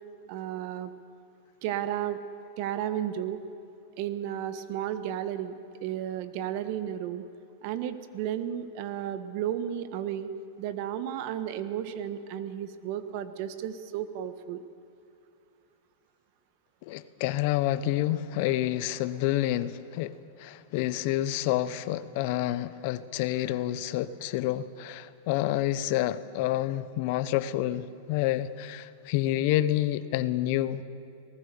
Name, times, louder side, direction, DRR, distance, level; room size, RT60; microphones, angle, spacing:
voice 1, 0.3-0.9 1.6-2.2 2.6-3.4 4.0-5.5 5.8-7.2 7.6-10.3 10.6-14.6, right 10 dB, 55° right, 11 dB, 1.4 m, -33 dB
voice 2, 16.8-30.8, left 14 dB, 55° left, 15 dB, 0.8 m, -28 dB
24.0 x 19.0 x 7.0 m, 2.5 s
supercardioid pair, 130°, 0 cm